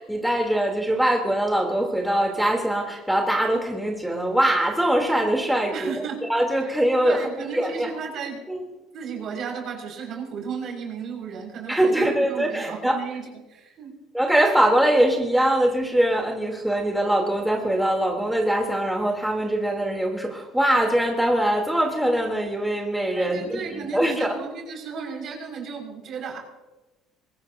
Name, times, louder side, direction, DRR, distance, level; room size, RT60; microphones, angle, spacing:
voice 1, 0.1-5.9 6.3-7.9 8.5-8.6 11.7-13.0 14.1-24.4, right 1 dB, 5° right, 0 dB, 3.7 m, -22 dB
voice 2, 5.7-6.2 6.6-6.7 7.0-8.4 8.9-14.0 23.1-26.4, right 6 dB, 55° right, 0 dB, 6.4 m, -34 dB
23.5 x 20.0 x 3.0 m, 1.1 s
hypercardioid pair, 75°, 0 cm